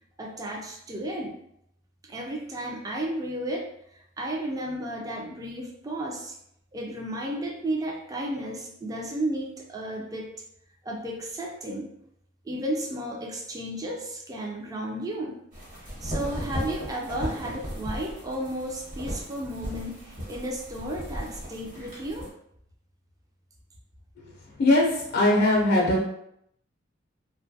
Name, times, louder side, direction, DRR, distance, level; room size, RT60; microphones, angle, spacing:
voice 1, 0.2-1.4 2.0-6.3 6.7-10.3 10.8-11.9 12.4-15.4 16.0-22.3, right 1 dB, 20° right, -1 dB, 0.3 m, -33 dB
sound 1, 15.5-22.3, equal, 45° right, 1.1 m, -36 dB
voice 2, 24.6-26.0, left 1 dB, 55° left, -1 dB, 0.4 m, -20 dB
2.5 x 2.2 x 2.6 m, 0.75 s
head